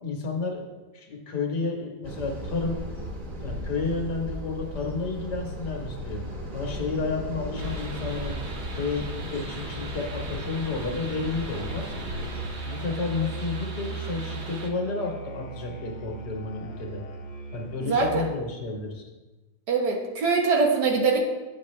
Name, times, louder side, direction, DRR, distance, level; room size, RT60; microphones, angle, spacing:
voice 1, 0.0-0.7 0.9-2.8 3.4-6.2 6.5-8.3 8.7-11.9 12.6-17.0 17.5-19.1, left 4 dB, 85° left, 1 dB, 1.9 m, -31 dB
sound 1, 2.0-12.5, equal, 25° right, 1.2 m, -36 dB
sound 2, 7.6-14.7, right 3 dB, 45° right, 1.1 m, -42 dB
Musical instrument, 11.5-18.5, right 4 dB, 50° left, 1.0 m, -38 dB
voice 2, 17.8-18.3 19.7-21.2, right 4 dB, 80° right, 2 dB, 1.8 m, -23 dB
9.0 x 7.6 x 3.2 m, 1.2 s
omnidirectional pair, 1.7 m